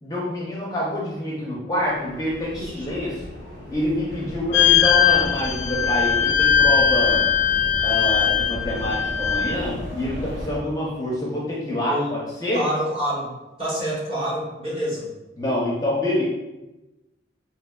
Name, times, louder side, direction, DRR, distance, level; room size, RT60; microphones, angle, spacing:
voice 1, 0.0-3.2 3.7-7.3 7.8-12.6 15.4-16.2, left 1 dB, 20° left, -5 dB, 0.5 m, -26 dB
sound 1, 1.8-10.6, equal, 50° right, 1.2 m, -38 dB
voice 2, 2.5-2.9 11.9-12.1 12.5-13.3 13.6-15.1, equal, 30° right, -6 dB, 1.0 m, -27 dB
sound 2, 4.3-10.6, equal, 70° right, 0.4 m, -37 dB
sound 3, 4.5-9.5, left 9 dB, 75° left, 0.3 m, -20 dB
4.5 x 2.8 x 2.2 m, 1.0 s
head